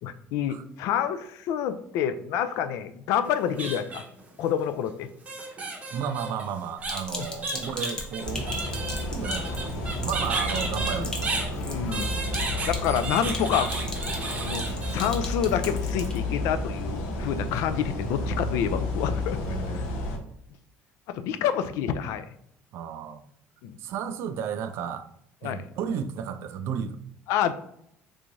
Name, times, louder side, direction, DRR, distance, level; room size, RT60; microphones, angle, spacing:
voice 1, 0.0-4.0 4.4-5.1 7.2-7.3 11.0-11.1 11.5-13.7 14.4-19.4 21.1-22.3 23.6-23.8 25.4-25.7 27.3-27.5, left 9 dB, 75° left, 0.3 m, -28 dB
sound 1, 3.3-4.2 5.3-11.5 11.9-15.1, right 2 dB, 25° right, 0.7 m, -33 dB
voice 2, 5.9-8.5 9.1-11.5 19.4-19.9 22.7-23.3 23.8-25.1 25.4-27.0, right 7 dB, 60° right, 0.3 m, -33 dB
Sink (filling or washing), 6.8-16.2, left 2 dB, 15° left, 0.6 m, -40 dB
sound 2, 8.2-20.2, left 1 dB, 90° left, 0.8 m, -31 dB
3.5 x 3.1 x 2.6 m
cardioid pair, 140°, 5 cm